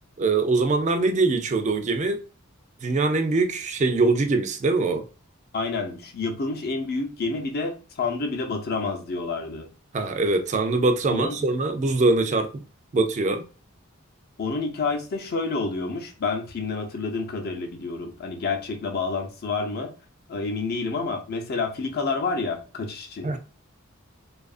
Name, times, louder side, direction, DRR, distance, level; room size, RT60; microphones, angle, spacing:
voice 1, 0.2-2.2 2.8-5.0 9.9-12.6 12.9-13.4 23.2-23.4, right 3 dB, 35° right, 0.4 m, -23 dB
voice 2, 5.5-9.7 11.1-11.4 14.4-19.9 20.3-23.4, left 4 dB, 50° left, 0.6 m, -29 dB
2.7 x 2.4 x 2.3 m
head